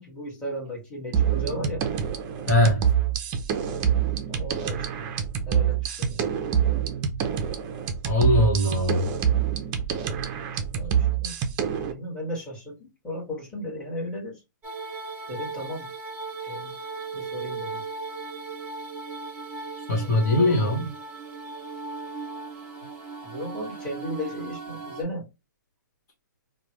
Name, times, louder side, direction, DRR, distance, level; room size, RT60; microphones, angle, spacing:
voice 1, 0.0-1.9 4.3-5.1 5.5-6.3 10.7-11.3 11.9-14.4 15.3-15.9 16.4-16.7 17.1-17.8 20.0-20.6 23.2-25.3, equal, 10° left, 1.5 m, -35 dB
sound 1, 1.1-11.9, right 8 dB, 30° right, 0.5 m, -26 dB
voice 2, 2.5-2.9 8.0-9.0 19.9-20.9, left 1 dB, 55° left, 1.1 m, -21 dB
sound 2, 14.6-25.0, right 3 dB, 15° right, 0.9 m, -37 dB
3.1 x 2.1 x 2.9 m
hypercardioid pair, 135°, 10 cm